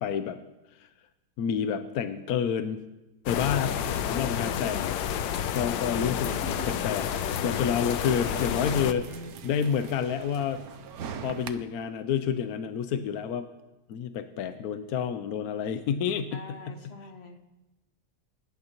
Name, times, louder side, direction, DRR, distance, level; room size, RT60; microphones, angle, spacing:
voice 1, 0.0-0.4 1.4-2.8 3.3-3.8 4.1-5.0 5.5-6.3 6.8-7.0 7.4-9.0 9.4-10.6 11.2-13.5 13.9-16.7, left 7 dB, 65° left, 9 dB, 1.0 m, -29 dB
sound 1, 3.3-8.9, left 9 dB, 85° left, 1.4 m, -30 dB
voice 2, 3.3-4.9 5.8-6.7 8.4-9.3 16.3-17.4, left 2 dB, 40° left, 4 dB, 1.4 m, -43 dB
sound 2, 6.5-11.5, right 7 dB, 65° right, 1.1 m, -42 dB
24.0 x 11.5 x 3.0 m, 1.0 s
omnidirectional pair, 2.0 m